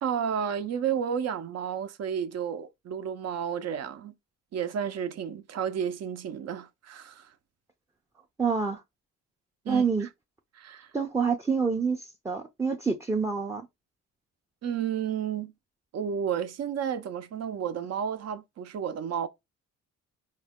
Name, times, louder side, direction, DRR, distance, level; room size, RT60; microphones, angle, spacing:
voice 1, 0.0-4.1 4.5-7.3 9.6-10.1 10.5-10.9 14.6-15.5 15.9-19.3, right 8 dB, 60° right, 0.6 m, -32 dB
voice 2, 8.4-8.8 9.7-10.1 10.9-13.7, right 5 dB, 10° right, 0.5 m, -27 dB
4.5 x 2.1 x 3.5 m
cardioid pair, 90°, 30 cm